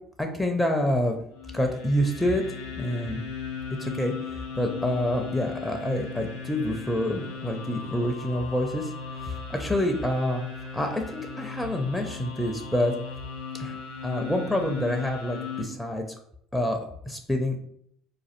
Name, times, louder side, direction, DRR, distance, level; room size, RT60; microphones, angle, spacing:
voice 1, 0.2-1.2 1.5-3.2 3.8-10.4 10.7-12.9 13.6-13.8 14.0-16.0 16.5-16.8 17.1-17.6, left 1 dB, 5° left, 4 dB, 0.5 m, -27 dB
sound 1, 1.3-15.6, left 5 dB, 75° left, 0.7 m, -38 dB
4.1 x 2.4 x 2.4 m, 0.69 s
figure-of-eight pair, 60°, 0 cm